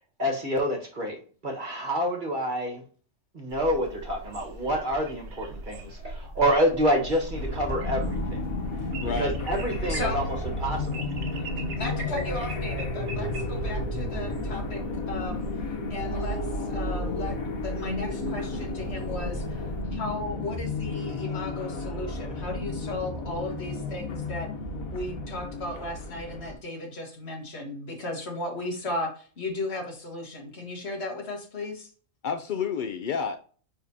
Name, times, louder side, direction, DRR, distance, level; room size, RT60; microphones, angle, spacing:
voice 1, 0.2-2.8 3.3-8.4 9.2-11.1, equal, 40° right, 1.4 m, -28 dB
sound 1, 3.5-19.8, right 1 dB, 65° right, 1.1 m, -40 dB
sound 2, 7.3-26.5, left 2 dB, 90° left, 1.7 m, -32 dB
voice 2, 9.0-9.3 32.2-33.4, left 6 dB, 70° left, 0.4 m, -29 dB
voice 3, 9.9-10.2 11.7-14.8 15.1-15.5 15.9-16.4 16.6-19.4 19.9-24.5 24.9-31.9, left 2 dB, 50° left, 1.8 m, -35 dB
9.5 x 3.7 x 2.7 m
omnidirectional pair, 1.4 m